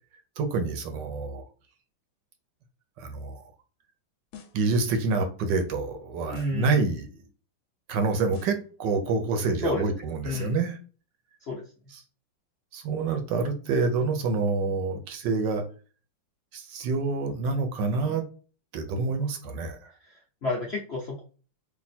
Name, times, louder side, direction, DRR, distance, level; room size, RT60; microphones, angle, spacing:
voice 1, 0.4-1.4 3.0-3.5 4.5-7.1 7.9-10.8 11.9-12.0 12.7-15.6 16.5-18.2 18.7-19.9, right 4 dB, 70° right, 6 dB, 1.3 m, -27 dB
sound 1, 4.3-4.7 6.3-6.7 8.3-8.7 10.3-10.7, left 8 dB, 75° left, 1.3 m, -47 dB
voice 2, 6.3-6.8 9.6-9.8 10.2-10.6 11.5-11.6 20.0-20.1 20.4-21.2, left 2 dB, 60° left, -4 dB, 0.7 m, -30 dB
3.4 x 2.5 x 4.1 m, 0.37 s
omnidirectional pair, 2.1 m